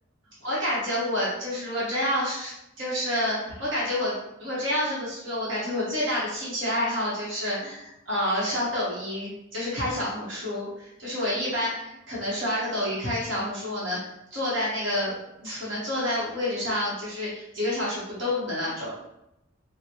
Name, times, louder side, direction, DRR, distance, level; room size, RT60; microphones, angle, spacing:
voice 1, 0.4-2.5 2.8-14.0 14.3-15.1 15.4-18.9, left 1 dB, 65° right, -7 dB, 1.1 m, -28 dB
3.9 x 2.1 x 2.9 m, 0.85 s
head